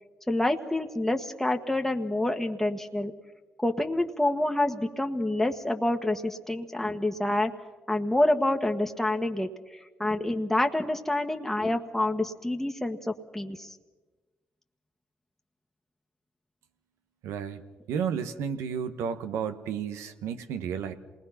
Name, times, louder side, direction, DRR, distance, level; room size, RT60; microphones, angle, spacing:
voice 1, 0.3-3.1 3.6-7.5 7.9-13.8, left 1 dB, 5° left, 4 dB, 1.5 m, -27 dB
voice 2, 17.2-17.6 17.9-20.9, right 7 dB, 85° right, 9 dB, 1.2 m, -32 dB
27.5 x 20.0 x 5.8 m, 1.3 s
supercardioid pair, 55°, 5 cm